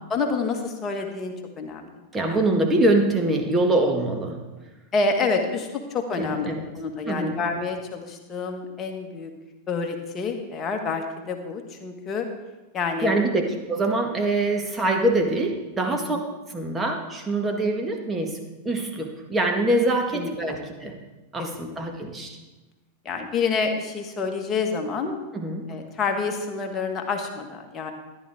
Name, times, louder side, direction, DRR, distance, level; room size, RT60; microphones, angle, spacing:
voice 1, 0.1-1.9 2.3-2.4 4.9-6.5 6.8-9.3 9.7-12.3 12.7-13.2 16.1-16.2 20.1-20.6 21.4-21.8 23.1-25.2 25.7-27.9, left 4 dB, 25° left, 3 dB, 1.7 m, -28 dB
voice 2, 2.1-4.4 6.2-6.7 7.1-7.4 13.0-16.2 16.5-18.4 18.7-21.0 21.3-22.4 25.3-25.7, right 2 dB, 15° right, 2 dB, 1.7 m, -24 dB
14.0 x 11.0 x 3.7 m, 1.1 s
figure-of-eight pair, 90°, 0 cm